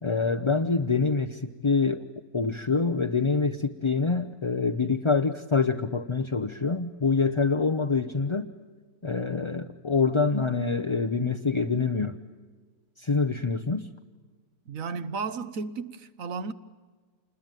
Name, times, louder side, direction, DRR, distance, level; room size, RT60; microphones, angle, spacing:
voice 1, 0.0-8.5 9.0-12.2 13.0-13.9, left 4 dB, 30° left, 0.5 m, -26 dB
voice 2, 14.7-16.5, right 4 dB, 65° right, 1.4 m, -33 dB
28.0 x 21.0 x 9.1 m
omnidirectional pair, 1.6 m